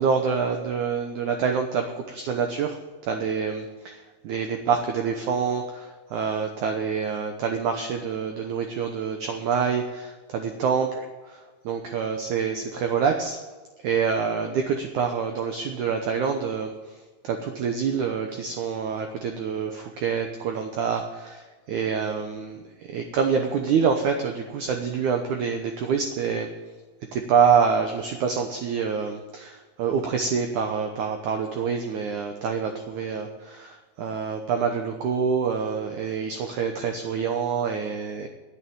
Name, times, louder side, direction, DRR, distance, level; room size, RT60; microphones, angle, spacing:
voice 1, 0.0-2.8 3.0-13.4 13.8-17.0 17.2-26.5 27.1-38.3, right 6 dB, 75° right, 4 dB, 1.8 m, -26 dB
9.7 x 8.9 x 9.2 m, 1.3 s
omnidirectional pair, 4.8 m